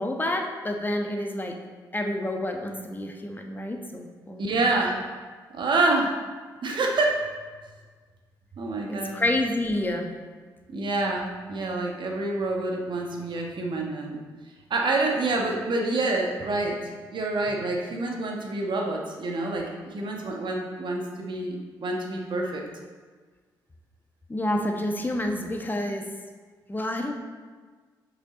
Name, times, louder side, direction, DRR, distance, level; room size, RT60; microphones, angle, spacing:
voice 1, 0.0-1.6 1.9-4.5 8.9-10.1 24.3-26.1 26.7-27.1, left 1 dB, 20° left, 3 dB, 1.1 m, -28 dB
voice 2, 4.4-5.2 5.5-6.1 6.6-7.3 8.6-9.2 10.7-14.2 14.7-22.6, right 2 dB, 50° right, 0 dB, 1.2 m, -27 dB
5.9 x 5.4 x 3.9 m, 1.5 s
hypercardioid pair, 40°, 10 cm